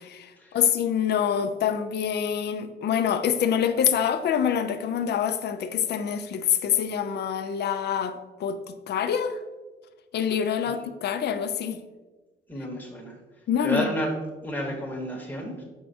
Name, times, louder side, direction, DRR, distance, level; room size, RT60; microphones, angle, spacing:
voice 1, 0.0-9.4 10.1-11.8 13.5-13.9, left 8 dB, 60° left, 10 dB, 0.4 m, -26 dB
voice 2, 12.5-13.2 13.6-14.1 14.4-15.6, equal, 10° left, -1 dB, 1.0 m, -31 dB
4.5 x 4.4 x 2.7 m, 1.2 s
cardioid pair, 90°, 20 cm